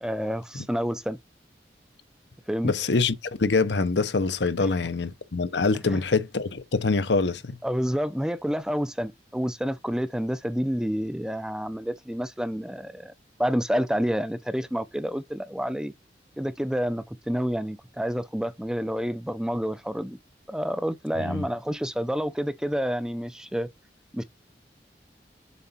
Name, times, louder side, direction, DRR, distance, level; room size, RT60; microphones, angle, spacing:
voice 1, 0.0-1.2 2.5-2.7 4.6-4.7 5.9-6.0 7.6-13.1 13.4-15.9 16.4-20.2 20.5-23.7 24.1-24.2, equal, 5° right, 0.4 m, -29 dB
voice 2, 2.6-7.6 21.2-21.4, left 3 dB, 80° left, 0.8 m, -25 dB
7.3 x 4.0 x 4.2 m
head